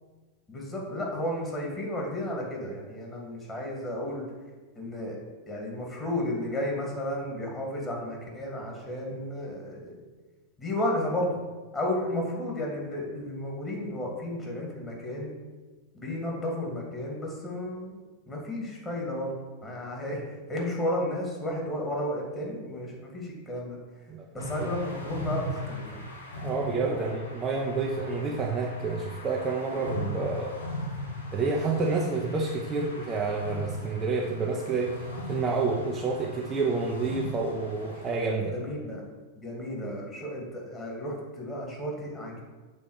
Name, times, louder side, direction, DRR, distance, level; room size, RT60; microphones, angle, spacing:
voice 1, 0.5-4.3 4.8-5.2 5.5-10.0 10.6-11.4 11.7-15.3 15.9-18.0 18.3-19.3 19.6-20.2 20.5-23.8 24.3-26.0 26.4-27.2 38.5-39.0 39.4-42.4, left 1 dB, 15° left, -2 dB, 2.4 m, -33 dB
sound 1, 24.4-38.2, left 1 dB, 75° left, 1.5 m, -39 dB
voice 2, 26.4-30.5 31.3-38.5, right 4 dB, 25° right, 0 dB, 0.8 m, -29 dB
7.0 x 4.3 x 6.5 m, 1.3 s
figure-of-eight pair, 90°, 0 cm